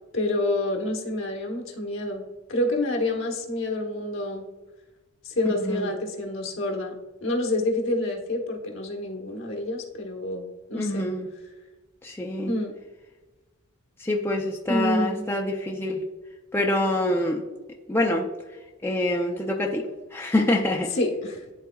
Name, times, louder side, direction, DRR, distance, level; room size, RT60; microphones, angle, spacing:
voice 1, 0.1-2.2 2.5-4.5 5.2-6.9 7.2-11.0 12.5-12.7 14.7-15.3 20.9-21.4, left 1 dB, 65° left, 2 dB, 1.1 m, -28 dB
voice 2, 10.7-11.3 12.0-12.5 14.0-16.0 16.5-17.4 17.9-18.3 18.8-20.9, left 1 dB, 10° left, 0 dB, 0.4 m, -26 dB
11.0 x 3.9 x 2.3 m, 1.2 s
head